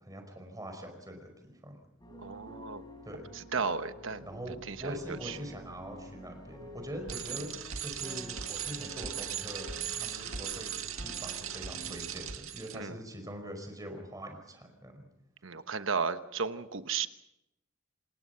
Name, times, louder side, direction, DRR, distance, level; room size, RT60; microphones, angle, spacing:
voice 1, 0.0-1.8 3.0-3.3 4.2-15.0, equal, 20° right, 5 dB, 5.0 m, -43 dB
sound 1, 2.0-12.3, left 1 dB, 20° left, 4.6 m, -49 dB
voice 2, 2.2-2.8 3.5-4.2 4.7-5.0 5.2-5.3 12.8-12.9 15.4-17.1, right 5 dB, 65° right, 10 dB, 1.2 m, -33 dB
Bicycle, 7.1-12.7, right 9 dB, 85° right, 2.0 m, -38 dB
27.5 x 20.5 x 5.8 m, 0.84 s
head